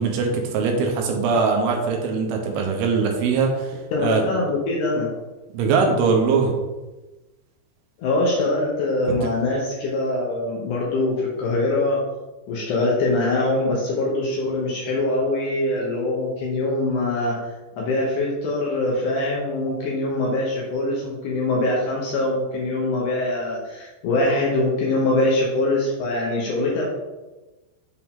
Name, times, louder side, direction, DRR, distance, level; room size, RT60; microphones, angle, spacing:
voice 1, 0.0-3.7 4.0-4.2 5.5-6.5, right 5 dB, 75° right, 2 dB, 2.6 m, -21 dB
voice 2, 3.9-5.1 8.0-12.0 12.5-17.4 17.8-26.8, left 2 dB, 90° left, -3 dB, 1.7 m, -23 dB
7.0 x 4.7 x 3.6 m, 1.1 s
omnidirectional pair, 5.1 m